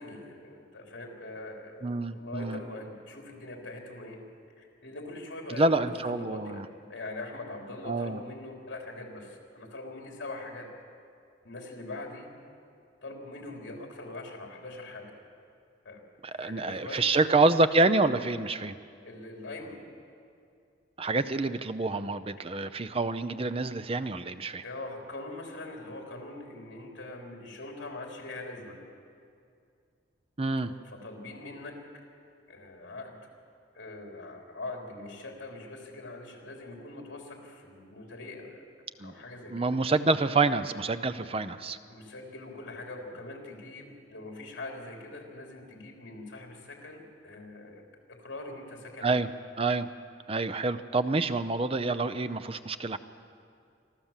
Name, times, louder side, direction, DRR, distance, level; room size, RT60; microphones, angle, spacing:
voice 1, 0.0-4.2 4.6-10.7 11.4-12.3 13.0-15.1 15.9-16.0 16.3-17.4 19.0-19.8 24.6-28.8 30.8-31.8 32.5-33.1 33.7-38.6 39.0-39.7 41.9-47.8 48.1-49.3, left 2 dB, 70° left, 0 dB, 3.7 m, -42 dB
voice 2, 1.8-2.6 5.5-6.7 7.8-8.2 16.4-18.8 21.0-24.6 30.4-30.7 39.0-39.1 39.5-41.8 49.0-49.3 49.6-49.9 50.3-53.0, right 3 dB, 30° right, 11 dB, 0.6 m, -27 dB
26.0 x 13.5 x 7.4 m, 2.4 s
head